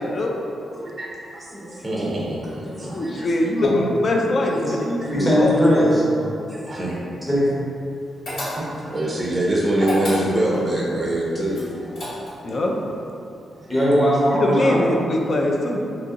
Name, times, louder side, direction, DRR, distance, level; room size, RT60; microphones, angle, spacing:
voice 1, 0.7-3.3 5.0-5.1 6.5-7.0 8.8-12.0 13.6-13.7, right 1 dB, 15° right, -5 dB, 0.6 m, -25 dB
voice 2, 1.5-2.2 2.7-3.1 5.1-6.3 7.3-7.5 13.7-14.9, equal, 5° left, -8 dB, 0.9 m, -20 dB
voice 3, 2.9-5.5 12.4-12.7 14.3-15.8, left 1 dB, 45° left, 1 dB, 0.3 m, -22 dB
sound 1, 8.3-8.9 9.7-10.6 11.5-12.5, equal, 60° left, 1.4 m, -29 dB
2.8 x 2.6 x 3.6 m, 2.7 s
wide cardioid pair, 130°, 0 cm